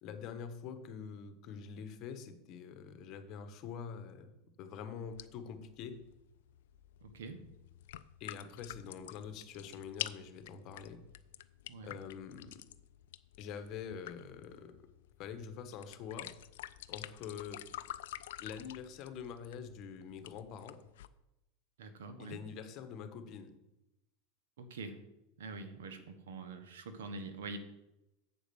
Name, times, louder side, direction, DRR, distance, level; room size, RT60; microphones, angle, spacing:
voice 1, 0.0-4.3 4.6-6.0 8.2-11.0 11.8-12.6 13.4-14.8 15.2-16.3 16.9-17.6 18.4-20.8 22.2-23.5, left 7 dB, 45° left, 9 dB, 1.1 m, -45 dB
sound 1, 5.0-21.1, left 13 dB, 80° left, 0.4 m, -49 dB
voice 2, 7.0-7.4 11.7-12.0 21.8-22.4 24.6-25.1 25.4-27.6, right 3 dB, 90° right, 8 dB, 1.2 m, -45 dB
7.6 x 5.0 x 6.9 m, 0.91 s
supercardioid pair, 130°, 0 cm